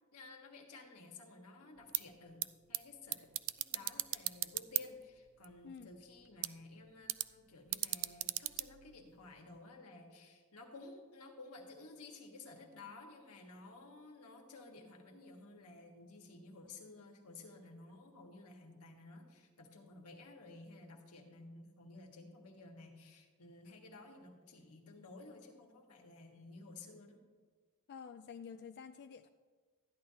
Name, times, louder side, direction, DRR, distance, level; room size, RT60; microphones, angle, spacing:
voice 1, 0.1-3.2 3.6-27.2, left 3 dB, 90° left, 1 dB, 1.5 m, -54 dB
sound 1, 1.8-9.6, right 16 dB, 60° right, 0.3 m, -41 dB
voice 2, 27.9-29.3, left 6 dB, 50° left, 7 dB, 0.3 m, -49 dB
13.5 x 10.0 x 2.8 m, 1.5 s
head